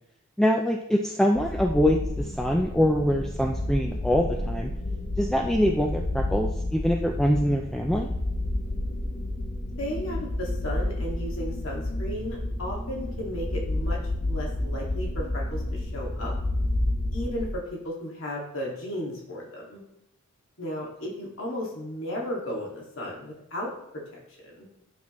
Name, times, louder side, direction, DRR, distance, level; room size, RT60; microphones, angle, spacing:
voice 1, 0.4-4.7 5.2-8.1, equal, ahead, 1 dB, 0.3 m, -24 dB
sound 1, 1.3-17.5, left 1 dB, 35° left, 0.8 m, -30 dB
voice 2, 9.8-16.3 17.1-19.8 20.6-24.7, equal, 60° left, -2 dB, 2.0 m, -35 dB
9.6 x 5.9 x 3.1 m, 0.83 s
head